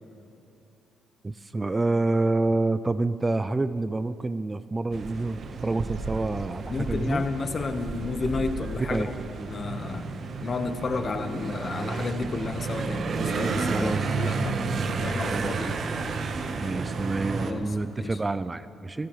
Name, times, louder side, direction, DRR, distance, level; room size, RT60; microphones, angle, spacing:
voice 1, 1.2-7.2 8.9-9.5 13.7-14.0 15.3-15.7 16.6-19.1, right 2 dB, 20° right, 13 dB, 0.4 m, -28 dB
sound 1, 4.9-17.5, right 4 dB, 55° right, 1.0 m, -31 dB
voice 2, 6.7-9.1 9.5-10.1 10.4-15.8 17.4-17.7 18.0-18.2, left 3 dB, 40° left, 8 dB, 1.1 m, -31 dB
27.5 x 13.5 x 3.1 m, 2.9 s
cardioid pair, 90°, 0 cm